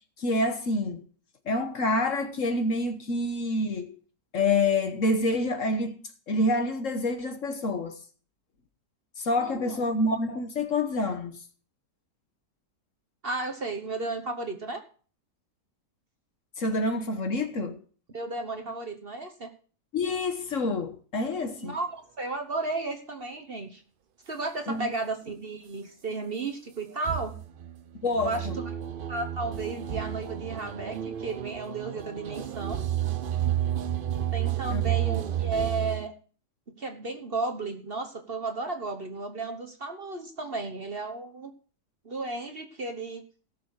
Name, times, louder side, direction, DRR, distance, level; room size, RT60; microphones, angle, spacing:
voice 1, 0.2-1.0 1.5-3.9 4.3-6.0 6.3-8.0 9.2-11.4 16.6-17.8 19.9-21.8 24.7-24.9 28.0-28.5 34.7-34.9, left 2 dB, 50° left, 1.4 m, -27 dB
voice 2, 9.4-9.8 13.2-14.8 18.1-19.5 21.6-21.9 22.2-23.8 24.3-27.4 28.2-28.7 29.1-32.8 34.3-36.1 36.7-41.5 42.0-43.2, right 3 dB, 40° right, 1.2 m, -34 dB
sound 1, 27.0-36.1, right 11 dB, 80° right, 0.4 m, -31 dB
17.5 x 6.9 x 4.7 m
omnidirectional pair, 1.8 m